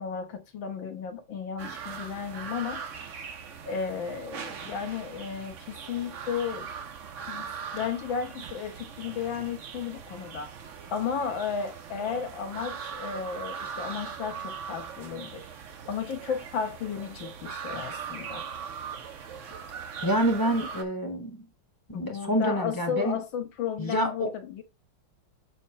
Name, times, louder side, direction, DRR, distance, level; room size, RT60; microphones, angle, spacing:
voice 1, 0.0-2.8 3.7-6.7 7.3-7.5 7.7-10.6 10.9-15.5 15.9-18.4 21.9-24.6, left 7 dB, 70° left, 1.8 m, -34 dB
sound 1, 1.6-20.8, right 6 dB, 60° right, 0.8 m, -40 dB
voice 2, 20.0-21.5 21.9-23.2 23.8-24.3, equal, 15° left, 0.9 m, -27 dB
7.7 x 2.8 x 5.5 m
omnidirectional pair, 2.3 m